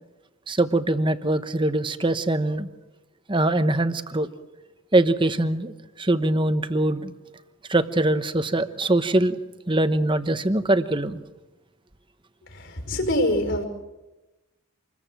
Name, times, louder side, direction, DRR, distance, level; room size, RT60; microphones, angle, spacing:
voice 1, 0.5-2.7 3.3-4.3 4.9-7.1 7.7-9.4 9.7-11.2, right 1 dB, 20° right, 10 dB, 1.0 m, -22 dB
voice 2, 12.5-13.6, left 1 dB, 55° left, 5 dB, 5.2 m, -24 dB
27.0 x 21.5 x 7.6 m, 1.1 s
head